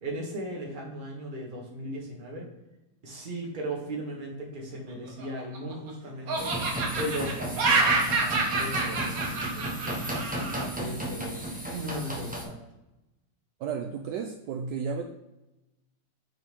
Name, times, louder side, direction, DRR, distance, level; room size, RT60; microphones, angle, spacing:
voice 1, 0.0-2.5 3.0-6.5 6.9-7.9 8.2-11.4 11.7-12.6, right 1 dB, 30° right, -2 dB, 1.4 m, -37 dB
Laughter, 5.1-5.9 6.3-10.7, right 3 dB, 55° right, 1.4 m, -27 dB
sound 1, 6.4-12.4, right 1 dB, 10° right, 0.4 m, -34 dB
voice 2, 13.6-15.0, right 6 dB, 75° right, 3 dB, 1.1 m, -33 dB
6.0 x 4.5 x 3.5 m, 0.97 s
omnidirectional pair, 2.0 m